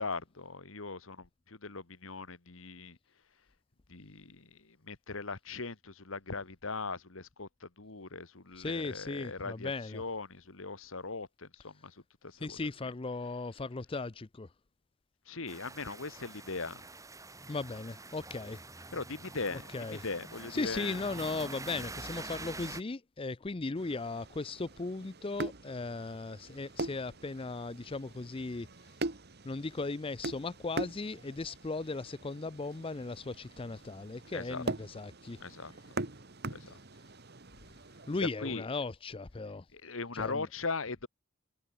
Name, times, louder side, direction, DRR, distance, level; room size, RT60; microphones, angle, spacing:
voice 1, 0.0-3.0 3.9-12.7 15.2-16.8 18.9-19.6 19.9-21.0 34.3-34.6 35.4-35.7 36.5-36.8 38.4-38.7 39.7-41.1, left 3 dB, 70° left, 1.8 m, -40 dB
voice 2, 8.5-10.0 12.3-14.5 17.5-18.6 19.7-20.0 20.5-28.9 29.4-35.4 38.1-39.7 40.1-40.5, left 3 dB, 25° left, 0.5 m, -37 dB
sound 1, 15.5-22.8, right 3 dB, 15° right, 4.1 m, -46 dB
sound 2, 23.7-38.2, right 2 dB, 50° right, 1.9 m, -42 dB
head